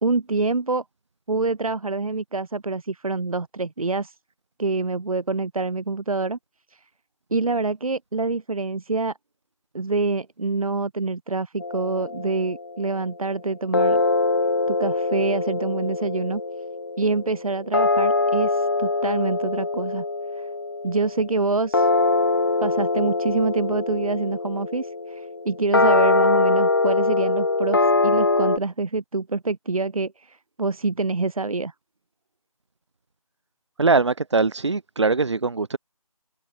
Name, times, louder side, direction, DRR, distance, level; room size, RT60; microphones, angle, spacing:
voice 1, 0.0-0.8 1.3-4.1 4.6-6.4 7.3-9.1 9.7-14.0 14.7-16.4 17.0-20.0 20.4-20.5 20.8-21.9 22.6-31.7, right 3 dB, 65° right, 1.2 m, -26 dB
sound 1, 11.6-13.0 13.7-28.6, left 3 dB, 40° left, 0.4 m, -23 dB
voice 2, 33.8-35.8, right 3 dB, 50° right, 2.5 m, -21 dB
figure-of-eight pair, 165°, 19 cm